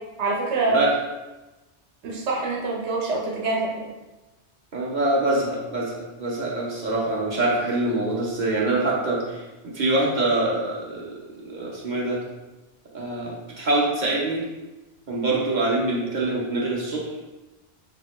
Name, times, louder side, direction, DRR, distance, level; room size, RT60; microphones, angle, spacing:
voice 1, 0.2-0.8 2.0-3.9, right 3 dB, 85° right, -2 dB, 1.0 m, -25 dB
voice 2, 4.7-12.2 12.9-14.4 15.1-17.1, right 2 dB, 50° right, -4 dB, 0.8 m, -25 dB
3.1 x 2.8 x 3.1 m, 1.1 s
omnidirectional pair, 1.1 m